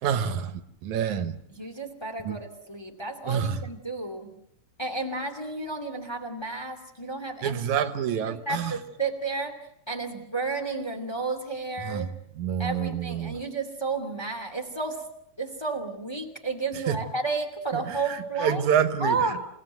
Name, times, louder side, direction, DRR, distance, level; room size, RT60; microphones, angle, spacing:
voice 1, 0.0-1.4 2.2-2.4 3.3-3.6 7.4-8.8 11.8-13.4 16.7-17.0 17.7-19.4, right 8 dB, 80° right, 11 dB, 2.5 m, -28 dB
voice 2, 1.5-4.3 4.8-9.5 9.9-12.1 12.6-15.0 15.4-18.6 19.0-19.4, right 3 dB, 10° left, 4 dB, 2.3 m, -32 dB
28.5 x 17.5 x 9.3 m, 0.77 s
omnidirectional pair, 3.4 m